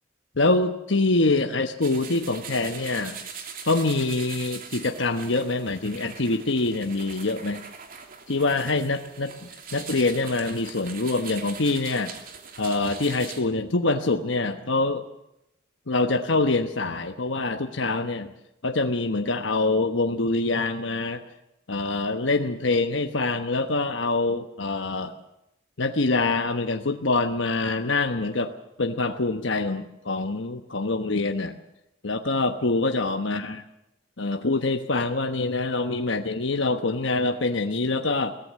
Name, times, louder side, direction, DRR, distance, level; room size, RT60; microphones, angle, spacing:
voice 1, 0.4-3.2 3.6-7.6 8.3-9.3 9.7-12.1 12.6-15.0 15.9-18.3 18.6-21.2 21.7-25.1 25.8-28.5 28.8-31.6 32.0-33.6 34.2-38.3, left 3 dB, 75° left, 5 dB, 1.2 m, -25 dB
sound 1, 1.8-13.4, right 6 dB, 50° right, 2.8 m, -41 dB
22.5 x 17.5 x 7.6 m, 0.87 s
head